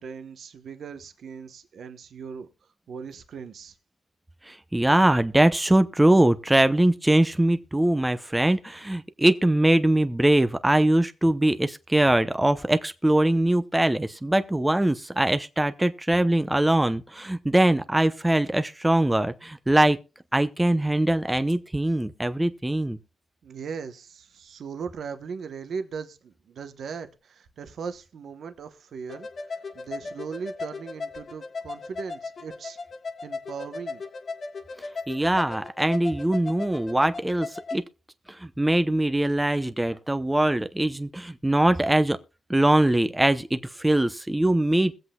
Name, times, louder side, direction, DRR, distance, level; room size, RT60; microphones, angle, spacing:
voice 1, 0.0-3.7 23.4-29.3 29.7-32.8 33.2-34.0, right 6 dB, 75° right, 1.0 m, -38 dB
voice 2, 4.5-20.0 20.3-23.0 35.1-37.8 38.3-42.2 42.5-44.9, right 1 dB, 10° right, 0.7 m, -22 dB
sound 1, 29.1-37.8, left 4 dB, 55° left, 1.4 m, -37 dB
21.5 x 7.9 x 2.3 m
cardioid pair, 80°, 0 cm